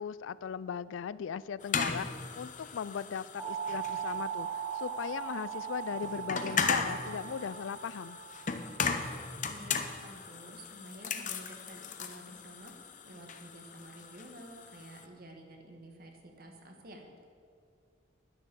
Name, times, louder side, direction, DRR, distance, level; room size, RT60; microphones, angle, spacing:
voice 1, 0.0-2.1 2.4-8.2, left 7 dB, 80° left, 18 dB, 0.3 m, -38 dB
sound 1, 1.6-15.0, left 5 dB, 40° left, 0.7 m, -37 dB
sound 2, 3.4-8.8, right 8 dB, 10° right, 1.4 m, -39 dB
voice 2, 9.5-17.3, right 1 dB, 50° right, 2 dB, 1.6 m, -50 dB
10.5 x 9.6 x 7.0 m, 2.2 s
head